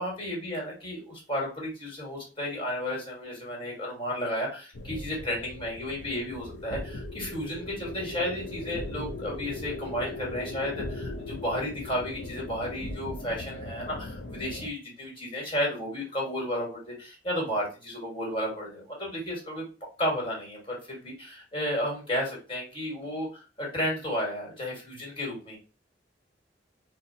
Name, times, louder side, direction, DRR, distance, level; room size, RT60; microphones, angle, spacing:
voice 1, 0.0-19.6 20.0-23.3 23.6-25.6, equal, 30° left, -2 dB, 1.6 m, -33 dB
sound 1, 4.7-14.7, left 2 dB, 65° left, 0.6 m, -38 dB
4.2 x 2.0 x 2.6 m, 0.32 s
head